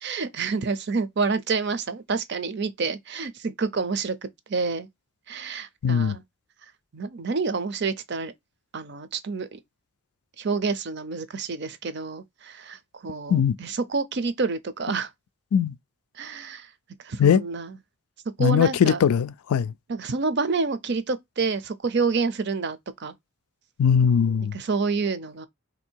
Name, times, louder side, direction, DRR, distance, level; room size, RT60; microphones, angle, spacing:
voice 1, 0.0-4.9 5.3-6.2 6.9-8.3 8.7-9.6 10.4-15.1 16.2-16.7 17.0-17.7 18.4-19.0 19.9-23.1 24.5-25.5, right 4 dB, 50° right, 0.5 m, -28 dB
voice 2, 5.8-6.2 13.3-13.6 15.5-15.7 17.2-17.4 18.4-19.7 23.8-24.6, left 7 dB, 80° left, 0.4 m, -20 dB
3.6 x 2.7 x 4.4 m
head